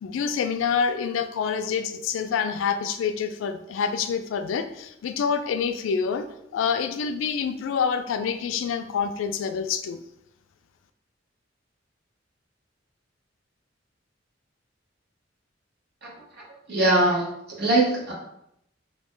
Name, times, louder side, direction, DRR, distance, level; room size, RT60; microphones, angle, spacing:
voice 1, 0.0-6.2 6.5-10.0, left 6 dB, 85° left, 9 dB, 0.3 m, -27 dB
voice 2, 16.4-18.1, right 2 dB, 60° right, -4 dB, 1.0 m, -22 dB
2.7 x 2.1 x 3.6 m, 0.79 s
head